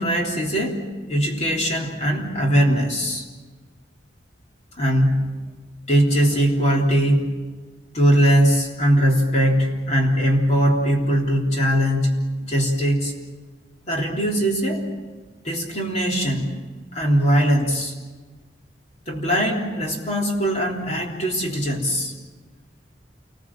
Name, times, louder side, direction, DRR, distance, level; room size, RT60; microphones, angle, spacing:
voice 1, 0.0-3.2 4.8-5.4 5.9-7.3 7.9-13.1 13.9-14.9 15.4-16.5 16.9-17.9 19.1-22.1, equal, 40° left, 0 dB, 3.5 m, -21 dB
28.5 x 20.5 x 7.3 m, 1.3 s
head